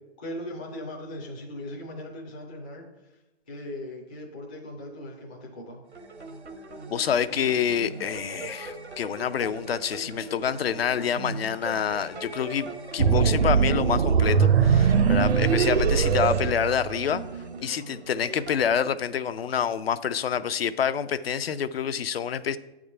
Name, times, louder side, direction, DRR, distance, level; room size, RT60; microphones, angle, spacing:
voice 1, 0.2-2.8 3.5-5.8, left 1 dB, 10° left, -2 dB, 0.3 m, -38 dB
sound 1, 5.8-18.7, right 3 dB, 90° right, 1.1 m, -39 dB
voice 2, 6.9-17.2 17.6-22.6, left 8 dB, 65° left, 12 dB, 0.5 m, -27 dB
sound 2, 13.0-17.3, right 6 dB, 65° right, 0.6 m, -21 dB
7.9 x 3.6 x 6.5 m, 0.99 s
hypercardioid pair, 140°, 32 cm